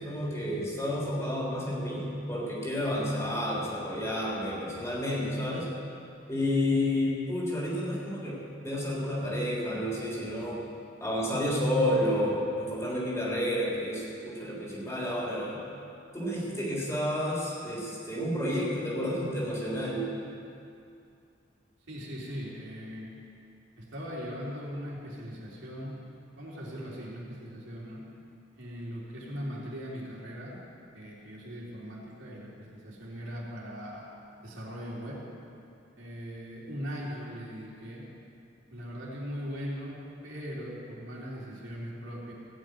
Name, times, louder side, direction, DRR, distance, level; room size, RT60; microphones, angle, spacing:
voice 1, 0.0-5.7 6.3-10.6 11.0-15.6 16.1-20.1, left 1 dB, 15° left, -5 dB, 3.4 m, -30 dB
voice 2, 21.9-23.1 23.7-26.0 26.3-28.0 28.5-30.6 30.9-34.0 34.4-35.2 36.0-38.1 38.7-40.0 40.2-42.3, equal, 85° right, -5 dB, 3.4 m, -39 dB
15.5 x 6.4 x 9.2 m, 2.5 s
head